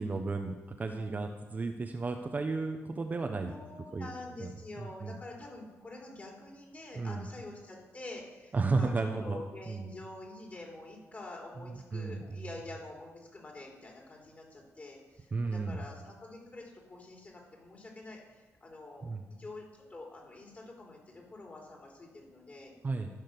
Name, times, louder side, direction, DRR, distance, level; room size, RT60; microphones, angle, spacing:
voice 1, 0.0-3.5 3.9-4.1 4.4-4.5 4.8-5.2 6.9-7.2 8.5-9.4 9.7-9.9 11.6-12.4 15.3-15.8 19.0-19.2 22.8-23.1, right 3 dB, 30° right, 4 dB, 0.9 m, -33 dB
voice 2, 3.4-19.1 19.4-22.7, left 2 dB, 30° left, -1 dB, 3.6 m, -47 dB
14.5 x 6.4 x 6.7 m, 1.2 s
cardioid pair, 120°, 5 cm